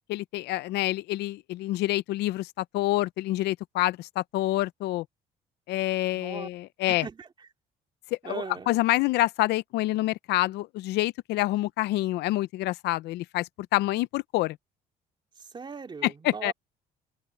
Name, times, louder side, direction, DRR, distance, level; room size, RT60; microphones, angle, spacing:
voice 1, 0.1-5.1 5.7-7.1 8.2-14.6 16.0-16.5, left 17 dB, 80° left, 0.6 m, -27 dB
voice 2, 6.1-6.5 6.9-7.3 8.2-8.7 15.4-16.5, right 5 dB, 25° right, 2.5 m, -39 dB
open air
cardioid pair, 110°, 17 cm